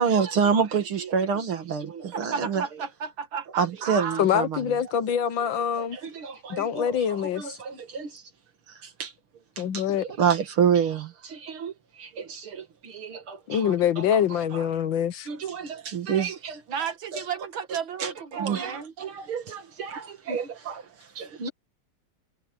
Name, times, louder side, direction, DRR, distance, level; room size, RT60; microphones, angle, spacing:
voice 1, 0.0-2.7 3.6-4.8 5.4-8.2 8.7-9.1 9.6-14.7 15.3-17.3 17.7-21.5, right 7 dB, 90° right, 3.0 m, -29 dB
voice 2, 2.1-4.2 16.7-18.9, right 7 dB, 70° right, 2.4 m, -33 dB
voice 3, 4.2-6.0 6.5-7.5 9.6-10.0 13.5-15.3, left 9 dB, 70° left, 1.7 m, -25 dB
omnidirectional pair, 2.2 m